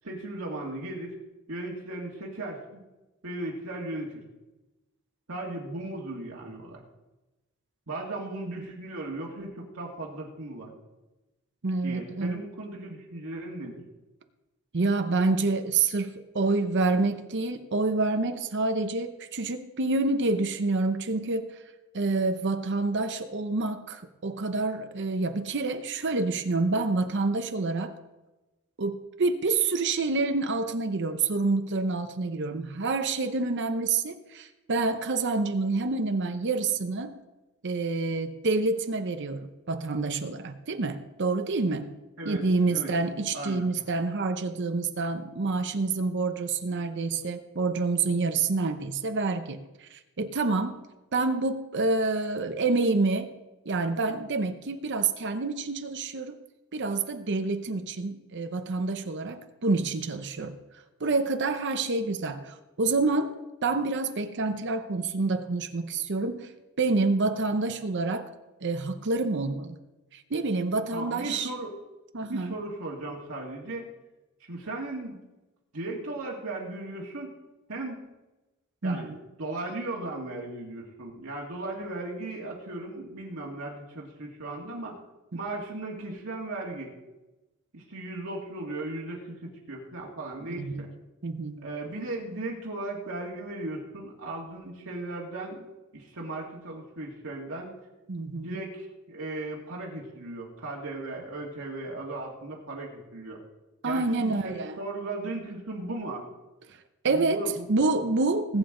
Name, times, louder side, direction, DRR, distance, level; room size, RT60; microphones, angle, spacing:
voice 1, 0.0-1.2 1.5-2.8 3.2-4.2 5.3-6.8 7.9-10.7 11.8-13.8 42.2-42.9 43.3-43.7 70.9-71.7 72.3-73.9 74.5-75.2 75.7-77.3 77.7-78.0 78.8-79.1 79.4-85.0 85.3-86.9 87.7-90.9 91.6-95.6 95.9-97.7 98.4-103.4 103.8-106.3 107.1-107.6, right 2 dB, 75° right, -3 dB, 2.0 m, -36 dB
voice 2, 11.6-12.4 14.7-21.5 21.9-27.9 28.8-37.2 37.6-41.9 42.2-50.8 51.1-53.3 53.7-56.4 56.7-60.6 61.0-66.5 66.8-68.3 68.6-69.8 70.1-71.5 72.1-72.6 78.8-79.2 90.5-90.9 91.2-91.6 98.1-98.6 103.8-104.8 106.7-106.8 107.0-107.4 107.7-108.6, right 3 dB, 55° right, 8 dB, 0.8 m, -28 dB
20.0 x 9.1 x 3.8 m, 1.1 s
head